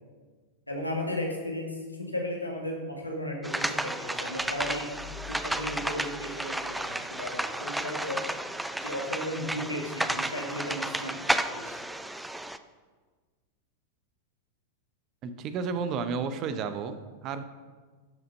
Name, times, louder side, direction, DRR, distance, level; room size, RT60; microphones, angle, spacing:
voice 1, 0.7-5.0 5.3-8.2 8.8-11.2 11.5-11.8, left 1 dB, 85° left, 0 dB, 2.1 m, -35 dB
sound 1, 3.4-12.6, right 1 dB, 5° right, 0.5 m, -32 dB
sound 2, 4.4-7.0, left 6 dB, 20° left, 1.6 m, -48 dB
voice 2, 15.2-17.4, right 5 dB, 35° right, 10 dB, 0.7 m, -32 dB
12.0 x 6.5 x 5.5 m, 1.4 s
figure-of-eight pair, 90°, 0 cm